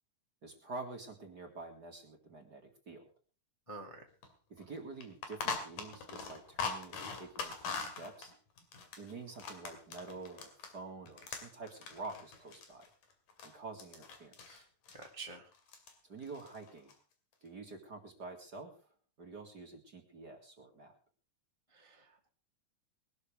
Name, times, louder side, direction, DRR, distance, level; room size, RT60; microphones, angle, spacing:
voice 1, 0.4-3.1 4.5-8.3 9.0-12.9 13.4-14.6 16.0-16.9 17.4-18.9 19.2-21.0, right 3 dB, 35° right, 3 dB, 2.2 m, -48 dB
voice 2, 3.7-4.0 14.5-14.6 15.0-15.5 21.7-22.3, right 3 dB, 15° left, 1 dB, 1.6 m, -48 dB
sound 1, 4.2-4.3 4.6-4.7 5.0-10.8 11.1-13.5 13.8-14.6 14.9-15.1 15.5-15.9 16.2-16.9, left 5 dB, 85° left, 4.0 m, -42 dB
21.5 x 12.5 x 3.4 m, 0.36 s
omnidirectional pair, 3.6 m